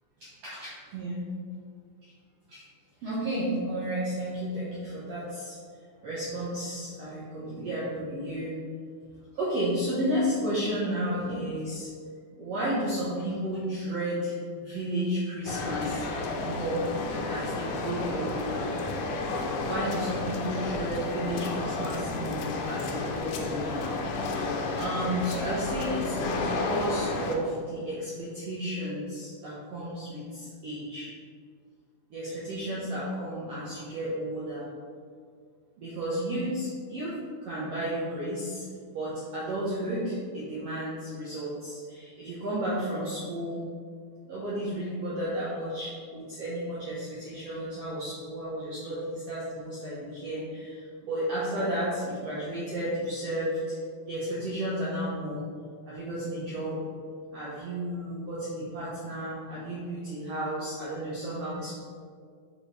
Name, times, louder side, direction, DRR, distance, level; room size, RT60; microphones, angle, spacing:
voice 1, 0.2-1.2 2.5-2.6 3.0-5.6 6.0-8.6 9.3-11.9 12.3-16.1 16.4-16.8 17.3-18.7 19.6-23.9 24.7-31.1 32.1-34.7 35.8-38.6 38.9-43.6 44.3-53.8 54.1-55.4 55.9-56.8 57.3-61.7, right 1 dB, 70° right, -8 dB, 1.5 m, -32 dB
sound 1, 15.5-27.4, left 3 dB, 80° left, 1.9 m, -31 dB
6.2 x 5.2 x 3.2 m, 2.1 s
omnidirectional pair, 4.2 m